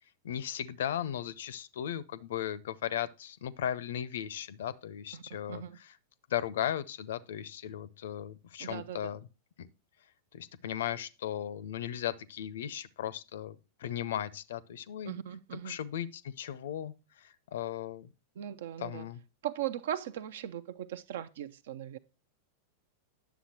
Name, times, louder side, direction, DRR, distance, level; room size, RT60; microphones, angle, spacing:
voice 1, 0.2-5.6 6.3-9.2 9.6-9.7 10.3-15.2 15.7-18.1 18.8-19.2, left 10 dB, 60° left, 0.5 m, -36 dB
voice 2, 5.5-5.8 8.6-9.2 15.0-15.8 18.4-19.1 19.4-22.0, right 10 dB, 60° right, 0.5 m, -38 dB
10.0 x 7.1 x 2.9 m
figure-of-eight pair, 90°, 0 cm